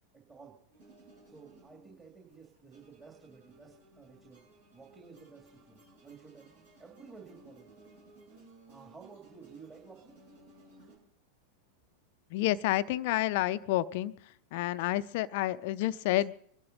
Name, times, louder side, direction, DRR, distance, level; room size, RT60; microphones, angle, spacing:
voice 1, 0.1-0.6 1.3-7.8 8.7-10.2, right 5 dB, 15° right, 0 dB, 2.6 m, -53 dB
sound 1, 0.7-11.0, right 2 dB, 65° right, 6.9 m, -59 dB
voice 2, 12.3-14.1 14.5-16.3, left 15 dB, 50° left, 16 dB, 0.6 m, -29 dB
24.5 x 12.0 x 4.1 m, 0.66 s
figure-of-eight pair, 90°, 0 cm